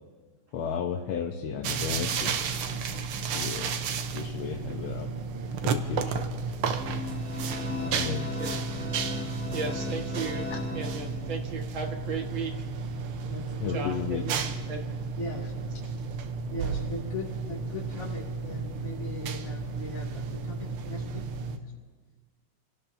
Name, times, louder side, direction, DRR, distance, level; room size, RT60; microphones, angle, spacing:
voice 1, 0.5-2.4 3.3-3.7 4.1-5.1 5.6-6.3 7.8-8.3 13.6-14.2, left 8 dB, 80° left, 3 dB, 1.7 m, -33 dB
sound 1, 1.6-21.6, right 5 dB, 90° right, 1.7 m, -33 dB
sound 2, 6.8-11.5, left 4 dB, 5° left, 2.4 m, -37 dB
voice 2, 9.5-12.5 13.7-14.9, right 4 dB, 70° right, 2 dB, 2.4 m, -35 dB
voice 3, 13.3-13.8 15.2-15.5 16.5-21.2 21.5-21.7, left 2 dB, 35° left, -6 dB, 2.6 m, -39 dB
29.0 x 17.0 x 2.7 m, 1.5 s
omnidirectional pair, 2.3 m